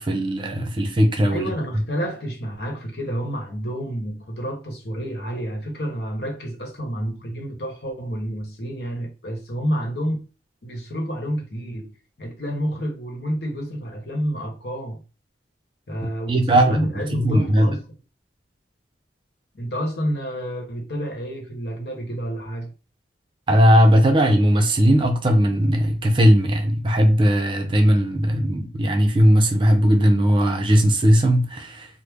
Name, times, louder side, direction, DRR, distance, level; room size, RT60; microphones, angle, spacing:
voice 1, 0.0-1.5 16.3-17.8 23.5-31.9, equal, 30° right, 0.5 m, -18 dB
voice 2, 1.3-10.2 10.6-11.9 12.2-15.0 15.9-17.8 19.5-22.7, equal, 65° left, 1.0 m, -29 dB
3.1 x 2.0 x 3.5 m
head